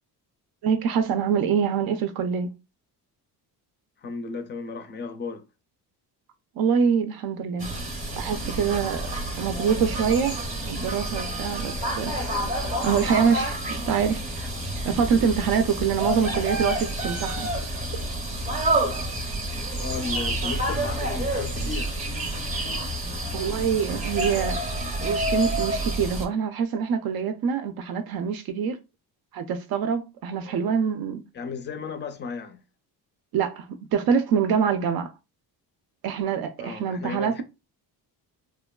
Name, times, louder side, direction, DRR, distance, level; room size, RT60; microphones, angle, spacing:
voice 1, 0.6-2.5 6.6-7.7 8.2-10.4 10.7-12.1 12.8-13.6 13.9-14.5 14.8-17.5 23.3-24.6 25.0-28.8 29.3-31.2 33.3-35.1 36.0-37.4, right 7 dB, 70° right, 0.5 m, -25 dB
voice 2, 4.0-5.4 19.8-21.9 30.4-30.8 31.3-32.6 36.6-37.4, left 4 dB, 30° left, 0.4 m, -35 dB
sound 1, 7.6-26.3, right 1 dB, 20° right, 0.6 m, -29 dB
3.0 x 2.2 x 2.2 m
cardioid pair, 155°, 38 cm